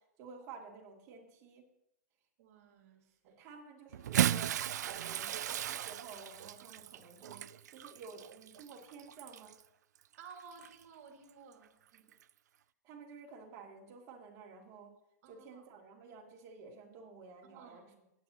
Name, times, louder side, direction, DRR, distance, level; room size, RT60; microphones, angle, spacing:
voice 1, 0.2-1.7 3.2-9.6 11.9-12.0 12.8-14.9 15.3-17.8, right 4 dB, 35° right, 2.5 m, -52 dB
voice 2, 2.4-3.4 10.2-11.8 15.2-15.7 17.4-17.9, right 5 dB, 60° right, 2.1 m, -55 dB
Bathtub (filling or washing) / Splash splatter, 3.9-9.6 10.5-10.7 12.1-12.2, right 11 dB, 80° right, 0.4 m, -36 dB
18.5 x 9.1 x 2.9 m
hypercardioid pair, 135°, 9 cm